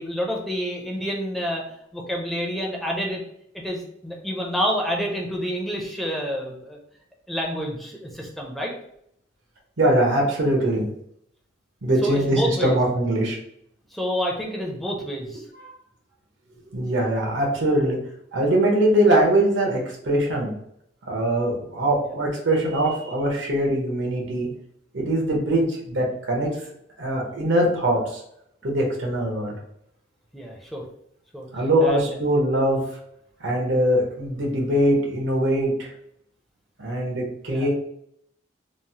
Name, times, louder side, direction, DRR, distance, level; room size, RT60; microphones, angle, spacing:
voice 1, 0.0-1.6 1.9-3.2 3.6-6.8 7.3-8.7 12.0-12.8 13.9-15.4 22.0-22.1 30.3-30.8 31.3-31.5 31.8-32.0 37.5-37.7, equal, ahead, -1 dB, 0.4 m, -28 dB
voice 2, 9.8-10.9 11.8-13.4 15.6-15.7 16.7-18.0 18.3-20.5 21.1-24.5 24.9-26.5 27.0-28.2 28.6-29.5 31.5-32.8 33.4-35.9 36.8-37.7, right 1 dB, 90° right, 0 dB, 0.8 m, -22 dB
3.0 x 2.0 x 2.7 m, 0.72 s
head